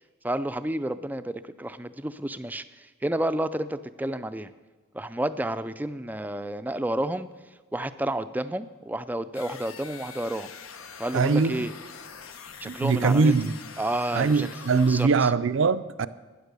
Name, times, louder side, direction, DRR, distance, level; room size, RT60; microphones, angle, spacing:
voice 1, 0.2-4.5 4.9-7.3 7.7-10.5 11.0-11.7 12.6-13.3 13.8-14.5 14.9-15.3, right 1 dB, 10° right, 0.3 m, -30 dB
sound 1, 9.3-15.1, left 6 dB, 90° left, 1.0 m, -44 dB
voice 2, 11.1-11.7 12.6-13.5 14.1-16.1, right 4 dB, 70° right, 0.5 m, -22 dB
13.0 x 9.6 x 6.8 m
head